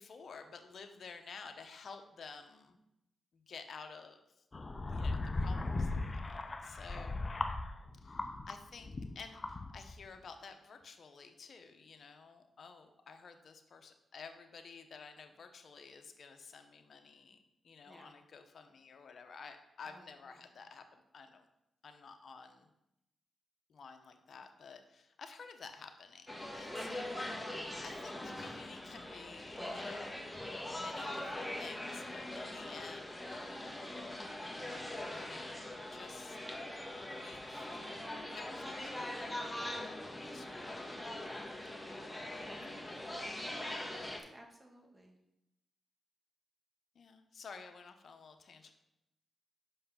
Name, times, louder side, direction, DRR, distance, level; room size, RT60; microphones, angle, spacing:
voice 1, 0.0-2.8 3.3-4.2 4.9-7.2 8.0-8.2 8.5-17.4 17.6-21.4 21.8-22.7 23.7-27.2 27.8-30.3 30.6-33.3 35.1-35.6 35.9-36.4 37.0-39.8 40.1-41.3 41.8-42.0 42.3-42.8 47.0-48.7, left 5 dB, 65° left, 6 dB, 0.9 m, -52 dB
sound 1, 4.5-8.6 8.8-10.0, left 2 dB, 40° left, 0.8 m, -38 dB
voice 2, 19.8-20.5 26.7-27.1 44.3-45.2 48.6-48.7, right 1 dB, 20° right, 2 dB, 1.8 m, -55 dB
sound 2, 26.3-44.2, left 1 dB, 10° left, 1.6 m, -42 dB
5.6 x 5.5 x 5.7 m, 0.84 s
supercardioid pair, 50°, 0 cm